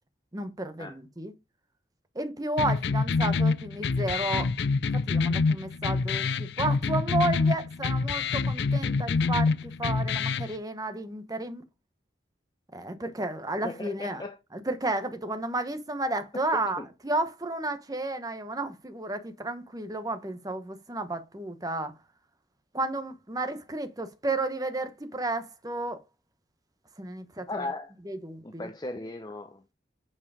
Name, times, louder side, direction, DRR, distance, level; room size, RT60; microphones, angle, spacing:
voice 1, 0.3-1.3 2.1-4.5 4.9-11.6 12.7-14.2 14.5-21.9 22.7-26.0 27.0-27.6 28.1-28.7, right 2 dB, 20° right, 1.1 m, -32 dB
sound 1, 2.6-10.5, left 4 dB, 65° left, 0.5 m, -26 dB
voice 2, 13.6-14.4 16.8-16.9 27.5-27.9 28.4-29.7, left 2 dB, 20° left, 0.7 m, -37 dB
8.6 x 4.8 x 4.8 m
head